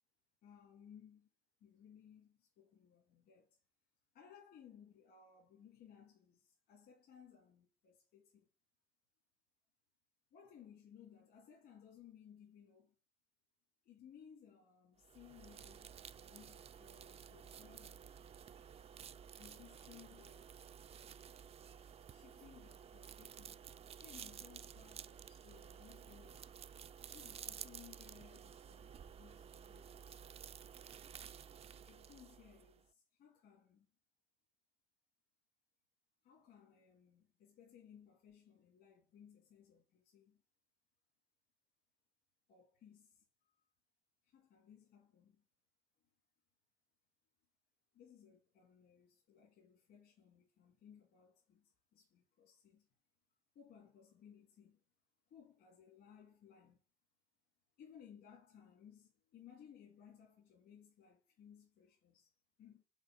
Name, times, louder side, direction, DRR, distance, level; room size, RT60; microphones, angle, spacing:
voice 1, 0.4-1.3 1.6-3.6 4.1-8.5 10.3-12.9 13.8-18.4 19.4-20.8 22.1-23.6 24.0-26.5 27.1-30.2 31.9-33.9 36.2-40.4 42.5-43.6 44.2-45.4 47.9-52.9 53.5-54.8 55.3-56.8 57.8-62.8, left 8 dB, 70° left, 2.3 m, -62 dB
sound 1, 15.0-32.8, right 8 dB, 35° right, 0.4 m, -53 dB
6.3 x 4.2 x 5.5 m
cardioid pair, 110°, 17 cm